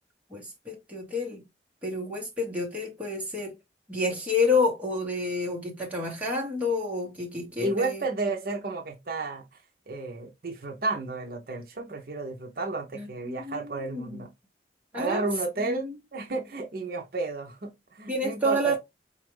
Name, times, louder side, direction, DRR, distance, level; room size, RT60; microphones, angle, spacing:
voice 1, 0.3-1.4 1.8-3.5 3.9-8.0 12.9-14.2 14.9-15.3 15.6-16.0 18.1-18.8, left 2 dB, 10° right, 1.1 m, -29 dB
voice 2, 7.6-9.4 9.9-14.3 14.9-18.8, right 3 dB, 55° right, 0.6 m, -32 dB
4.2 x 2.4 x 3.1 m
head